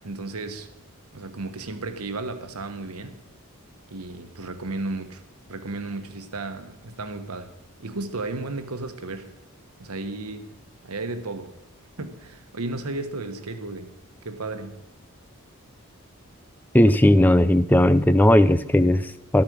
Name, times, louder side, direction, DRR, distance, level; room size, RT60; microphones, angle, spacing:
voice 1, 0.0-0.7 1.1-3.2 3.9-5.2 5.5-7.5 7.8-9.3 9.8-10.5 10.8-11.6 12.0-13.9 14.2-14.8, right 2 dB, 90° right, 1.3 m, -34 dB
voice 2, 16.7-19.4, left 1 dB, 10° left, 0.4 m, -17 dB
12.5 x 8.7 x 6.2 m
head